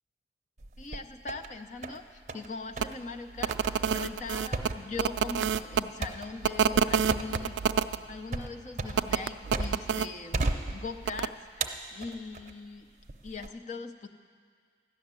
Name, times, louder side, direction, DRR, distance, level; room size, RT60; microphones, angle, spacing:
sound 1, 0.6-1.5 1.8-2.5 2.8-3.0 3.5-10.0 10.3-11.2 11.6-12.5 13.1-13.5, right 3 dB, 40° right, 0.6 m, -35 dB
voice 1, 0.8-12.9 13.2-14.1, left 4 dB, 40° left, 7 dB, 0.5 m, -41 dB
sound 2, 2.8-2.9 3.4-5.8 6.4-8.0 8.9-10.1 11.0-11.3, right 7 dB, 90° right, 0.3 m, -27 dB
13.0 x 6.4 x 9.6 m, 2.1 s
head